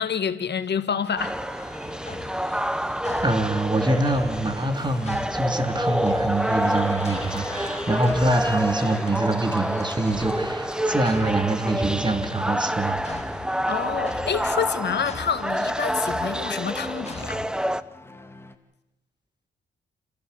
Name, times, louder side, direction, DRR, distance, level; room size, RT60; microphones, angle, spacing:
voice 1, 0.0-1.4 2.4-2.6 13.7-17.4, left 7 dB, 55° left, 2.1 m, -28 dB
sound 1, 1.2-17.8, equal, 5° right, 1.0 m, -28 dB
sound 2, 1.3-17.5, left 3 dB, 30° left, 2.7 m, -42 dB
voice 2, 3.2-13.4, right 2 dB, 20° right, 3.1 m, -25 dB
Cheering, 4.4-18.6, left 2 dB, 10° left, 2.6 m, -42 dB
30.0 x 14.0 x 8.3 m
supercardioid pair, 60°, 21 cm